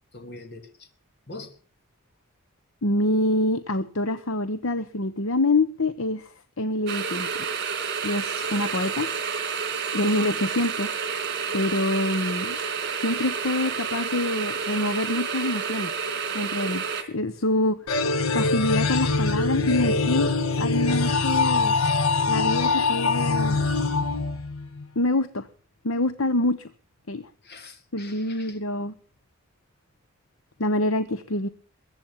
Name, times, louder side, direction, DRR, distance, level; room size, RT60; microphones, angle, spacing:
voice 1, 0.1-0.9 1.3-1.6 27.4-28.6, left 2 dB, 50° left, 7 dB, 3.1 m, -43 dB
voice 2, 2.8-7.4 8.0-9.1 9.9-10.9 11.5-12.6 13.0-15.9 16.3-17.8 18.3-20.3 20.6-21.7 22.3-23.6 24.9-25.5 25.8-26.7 27.1-27.3 27.9-28.9 30.6-31.5, left 1 dB, 65° left, 12 dB, 1.1 m, -26 dB
sound 1, 6.9-17.0, right 6 dB, 50° right, 3.6 m, -30 dB
sound 2, 17.9-24.9, left 3 dB, 80° left, 1.5 m, -23 dB
22.5 x 8.4 x 7.3 m, 0.43 s
head